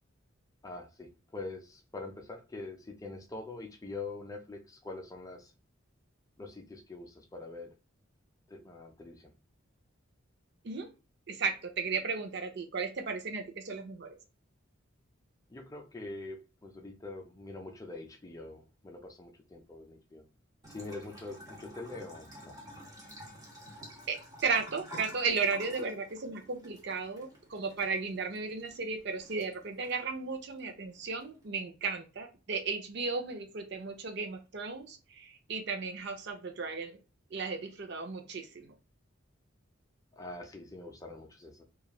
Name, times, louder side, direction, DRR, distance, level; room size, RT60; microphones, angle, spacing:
voice 1, 0.6-5.5 6.4-7.7 8.5-9.3 15.5-20.2 20.7-22.6 40.1-41.6, left 2 dB, 15° left, 0.5 m, -44 dB
voice 2, 11.3-14.2 24.1-37.0 37.3-38.7, right 4 dB, 55° right, 0.5 m, -35 dB
Bathtub (filling or washing) / Trickle dribble, 20.6-31.6, equal, 20° right, 0.7 m, -51 dB
3.0 x 2.3 x 2.2 m
head